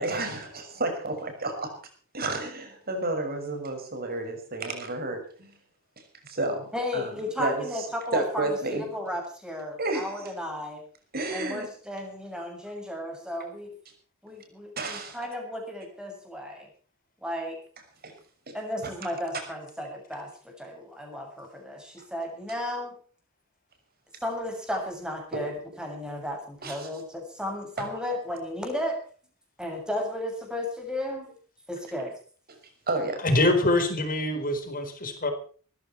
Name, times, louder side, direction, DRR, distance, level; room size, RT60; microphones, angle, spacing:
voice 1, 0.0-1.7 2.1-5.5 6.0-7.1 7.4-7.6 8.1-8.9 9.8-10.2 11.1-11.7 14.8-15.2 18.0-18.1 18.5-18.6 25.3-25.4 26.6-26.9 27.8-27.9 32.5-32.6 32.9-33.3, right 2 dB, 45° right, 6 dB, 6.0 m, -31 dB
voice 2, 6.7-10.8 11.3-13.7 14.2-16.7 17.2-17.6 18.5-23.0 24.2-29.0 29.6-31.3 31.7-32.1, left 1 dB, 5° right, 2 dB, 7.1 m, -34 dB
voice 3, 33.2-35.3, left 2 dB, 40° left, 7 dB, 4.3 m, -24 dB
20.5 x 14.5 x 4.4 m, 0.41 s
head